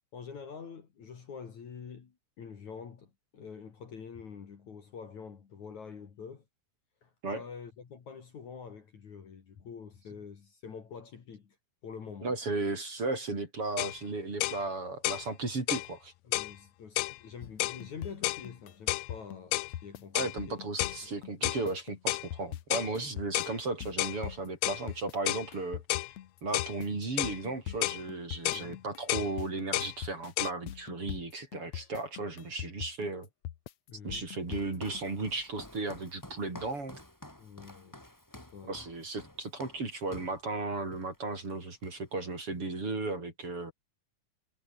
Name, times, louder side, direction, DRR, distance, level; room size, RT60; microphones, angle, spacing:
voice 1, 0.1-6.4 7.0-11.6 11.8-12.3 16.2-20.6 21.0-21.1 23.0-23.1 28.5-28.8 33.9-34.3 37.4-38.0 38.4-38.8, left 6 dB, 50° left, 3.7 m, -46 dB
voice 2, 12.2-16.1 20.1-25.8 26.4-33.3 34.0-37.0 38.7-43.7, right 3 dB, 35° right, 5.7 m, -35 dB
sound 1, 13.8-14.0 14.4-14.6 15.0-15.3 15.7-15.9 16.3-16.5 17.0-17.2 17.6-17.8 18.2-18.5 18.9-19.1 19.5-19.7 20.2-20.4 20.8-21.0 21.4-21.6 22.1-22.3 22.7-22.9 23.3-23.6 24.0-24.2 24.6-24.8 25.3-25.5 25.9-26.1 26.5-26.8 27.2-27.4 27.8-28.0 28.5-28.7 29.1-29.3 29.7-29.9 30.4-30.5, left 20 dB, 85° left, 2.0 m, -31 dB
sound 2, 17.4-35.0, left 12 dB, 65° left, 1.8 m, -42 dB
Walk footsteps, 34.5-40.4 40.9-41.2 41.4-42.3, left 1 dB, 5° left, 1.9 m, -50 dB
omnidirectional pair, 4.7 m